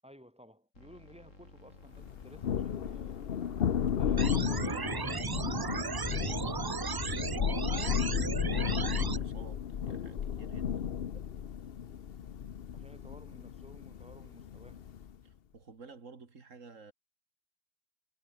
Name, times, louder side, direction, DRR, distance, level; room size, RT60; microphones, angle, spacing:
voice 1, 0.0-3.3 3.9-5.2 7.7-8.1 12.7-14.9, equal, 5° right, 7.0 m, -54 dB
sound 1, 0.7-6.8, left 2 dB, 80° left, 6.4 m, -55 dB
Thunder, 2.0-15.2, left 8 dB, 55° left, 1.0 m, -34 dB
voice 2, 4.1-4.8 7.0-7.4 8.5-10.9 15.2-16.9, right 4 dB, 80° right, 2.6 m, -52 dB
sound 2, 4.2-9.2, right 5 dB, 40° right, 0.3 m, -35 dB
omnidirectional pair, 1.3 m